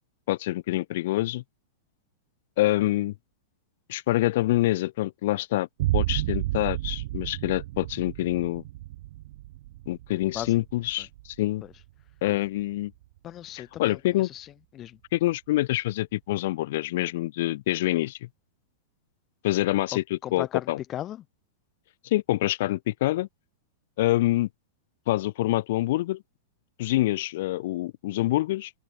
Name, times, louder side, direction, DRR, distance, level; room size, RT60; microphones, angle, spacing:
voice 1, 0.3-1.4 2.6-3.1 3.9-5.7 5.9-8.6 9.9-11.6 12.2-12.9 13.5-14.3 15.1-18.3 19.4-20.8 22.0-23.3 24.0-24.5 25.1-26.2 26.8-28.7, left 16 dB, 55° left, 0.7 m, -26 dB
sound 1, 5.8-13.2, right 17 dB, 55° right, 1.0 m, -32 dB
voice 2, 13.2-15.0 20.2-21.2, left 12 dB, 25° left, 2.6 m, -37 dB
supercardioid pair, 155°, 0 cm